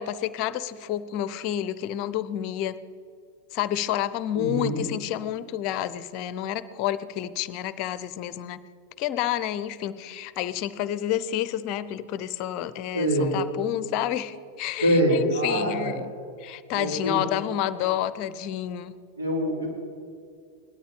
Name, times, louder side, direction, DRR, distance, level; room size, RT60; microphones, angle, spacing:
voice 1, 0.0-2.8 3.5-8.6 9.0-16.1 16.4-19.0, left 11 dB, 40° left, 16 dB, 0.6 m, -29 dB
voice 2, 4.3-4.8 12.9-13.3 14.8-15.9 16.7-17.2 19.2-19.7, equal, 80° right, -4 dB, 4.5 m, -24 dB
18.0 x 12.5 x 5.2 m, 2.3 s
figure-of-eight pair, 90°, 0 cm